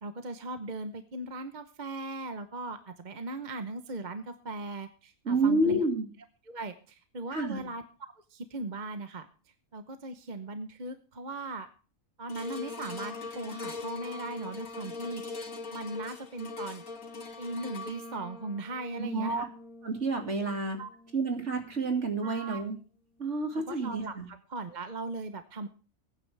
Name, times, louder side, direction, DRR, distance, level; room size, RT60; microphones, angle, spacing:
voice 1, 0.0-5.8 6.5-9.3 9.7-11.7 12.2-15.2 15.7-16.8 17.4-19.5 20.8-20.9 22.2-22.6 23.5-25.7, right 2 dB, 35° right, 8 dB, 1.0 m, -38 dB
voice 2, 5.3-6.1 7.3-7.6 19.0-19.4 19.8-20.8 21.1-22.8 23.2-24.3, right 2 dB, 55° right, 4 dB, 2.8 m, -29 dB
sound 1, 12.3-22.7 23.2-23.3, left 3 dB, 75° left, 2.9 m, -42 dB
21.0 x 9.7 x 3.4 m, 0.36 s
omnidirectional pair, 1.5 m